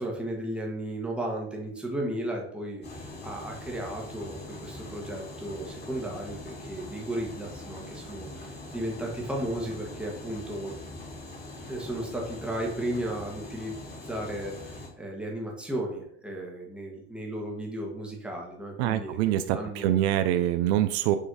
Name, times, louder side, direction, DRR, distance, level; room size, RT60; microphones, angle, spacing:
voice 1, 0.0-10.7 11.7-19.2 19.5-20.0, right 1 dB, 5° right, -1 dB, 1.5 m, -35 dB
sound 1, 2.8-14.9, left 2 dB, 30° left, 2.5 m, -42 dB
voice 2, 18.8-21.2, right 12 dB, 75° right, 9 dB, 0.6 m, -25 dB
6.7 x 3.2 x 4.8 m, 0.69 s
supercardioid pair, 135°, 33 cm